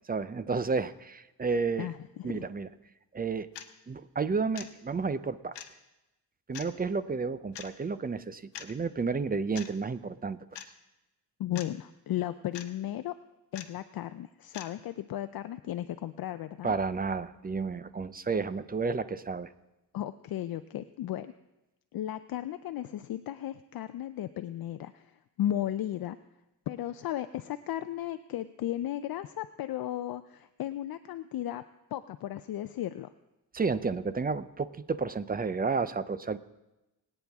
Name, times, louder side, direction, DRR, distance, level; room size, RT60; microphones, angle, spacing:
voice 1, 0.1-1.9 2.2-2.7 3.1-3.5 3.9-5.6 6.5-10.6 16.6-19.5 33.5-36.4, right 4 dB, 20° right, 14 dB, 0.5 m, -31 dB
voice 2, 1.8-2.5 11.4-13.1 13.5-16.7 19.9-21.3 21.9-25.1 25.4-26.2 26.7-31.6 31.9-33.1, left 12 dB, 60° left, 11 dB, 0.5 m, -35 dB
sound 1, 3.5-3.7 4.5-4.7 5.5-5.7 6.5-6.7 7.5-7.7 8.5-8.7 9.5-9.7 10.5-10.7 11.5-11.7 12.5-12.7 13.5-13.7 14.5-14.7, left 10 dB, 75° left, 1.1 m, -42 dB
22.0 x 9.1 x 3.5 m, 0.98 s
cardioid pair, 100°, 42 cm